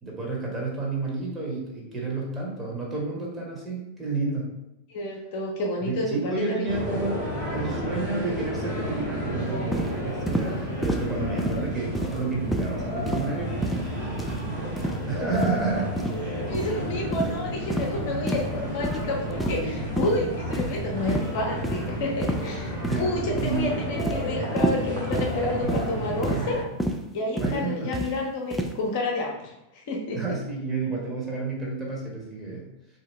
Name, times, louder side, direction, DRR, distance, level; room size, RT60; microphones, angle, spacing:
voice 1, 0.0-4.5 5.8-7.2 7.5-15.9 22.9-23.1 23.4-23.8 25.6-26.1 27.4-27.9 30.1-32.7, right 3 dB, 15° right, -3 dB, 1.3 m, -31 dB
voice 2, 4.9-6.1 6.5-6.7 11.4-11.6 16.1-26.6 27.1-30.2, left 2 dB, 50° left, -1 dB, 0.8 m, -30 dB
sound 1, 6.7-26.6, equal, 55° right, 1.2 m, -31 dB
sound 2, 9.7-9.9 10.3-10.5 10.8-11.1 11.4-11.6 11.9-12.2 12.5-12.7 13.1-13.3 13.6-13.9 14.2-14.4 14.8-15.0 15.3-15.6 16.0-16.2 16.5-16.7 17.1-17.3 17.7-17.9 18.3-18.5 18.8-19.0 19.4-19.7 19.9-20.1 20.5-20.8 21.1-21.3 21.6-21.8 22.2-22.5 22.8-23.1 23.4-23.6 24.0-24.2 24.6-24.8 25.1-25.3 25.7-25.9 26.2-26.4 26.8-27.0 27.4-27.6 27.9-28.1 28.5-28.7, right 1 dB, ahead, 0.4 m, -28 dB
3.6 x 2.9 x 3.3 m, 0.91 s
figure-of-eight pair, 90°, 0 cm